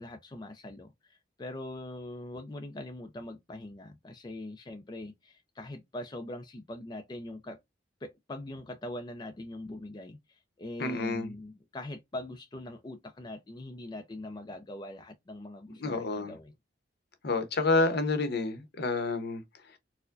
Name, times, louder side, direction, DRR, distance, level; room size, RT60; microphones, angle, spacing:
voice 1, 0.0-7.6 8.0-16.5, left 1 dB, 25° left, 0.4 m, -42 dB
voice 2, 10.8-11.3 15.7-16.3 17.2-19.4, left 3 dB, 60° left, 0.8 m, -29 dB
4.4 x 2.1 x 2.4 m
head